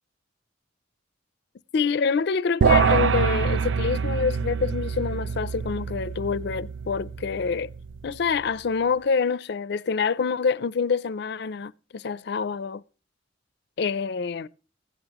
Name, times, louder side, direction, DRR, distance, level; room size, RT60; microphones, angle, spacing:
voice 1, 1.7-7.7 8.0-12.8 13.8-14.5, left 5 dB, 60° left, 0.4 m, -26 dB
sound 1, 2.6-8.1, right 6 dB, 75° right, 0.5 m, -25 dB
15.5 x 9.8 x 3.0 m
head